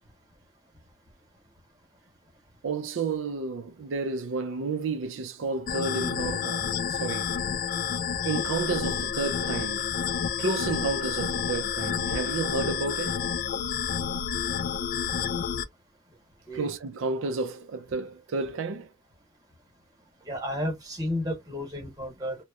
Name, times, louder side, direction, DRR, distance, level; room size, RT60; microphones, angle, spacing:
voice 1, 2.6-7.3 8.2-9.9 10.4-13.2 16.5-18.9, right 4 dB, 75° right, 0.4 m, -31 dB
sound 1, 5.7-15.6, left 7 dB, 45° left, 0.3 m, -29 dB
voice 2, 20.2-22.4, left 1 dB, 20° right, 1.0 m, -32 dB
2.8 x 2.1 x 2.3 m
head